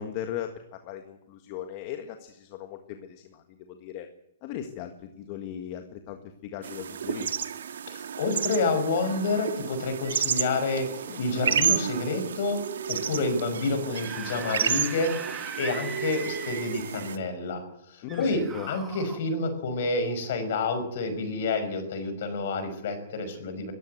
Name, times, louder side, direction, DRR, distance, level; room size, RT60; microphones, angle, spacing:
voice 1, 0.0-4.1 4.4-7.5 9.8-9.9 11.1-11.2 14.4-14.5 18.0-18.7, left 10 dB, 35° left, 6 dB, 1.6 m, -38 dB
sound 1, 6.6-17.2, right 8 dB, 80° right, 1.8 m, -31 dB
voice 2, 7.9-10.9 11.2-12.6 12.9-15.1 15.6-17.6 17.9-18.4 18.7-23.7, left 3 dB, 55° left, 9 dB, 5.6 m, -28 dB
Screaming / Screech, 13.9-17.1 18.1-19.2, right 6 dB, 10° right, 2.4 m, -40 dB
22.0 x 15.0 x 7.9 m, 0.80 s
hypercardioid pair, 165°, 0 cm